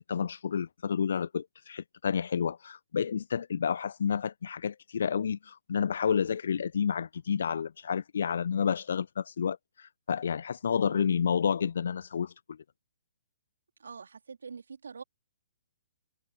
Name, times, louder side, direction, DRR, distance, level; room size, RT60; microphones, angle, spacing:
voice 1, 0.0-12.3, left 7 dB, 55° left, 0.8 m, -30 dB
voice 2, 10.7-11.0 13.8-15.0, right 5 dB, 60° right, 3.8 m, -45 dB
figure-of-eight pair, 125°, 0 cm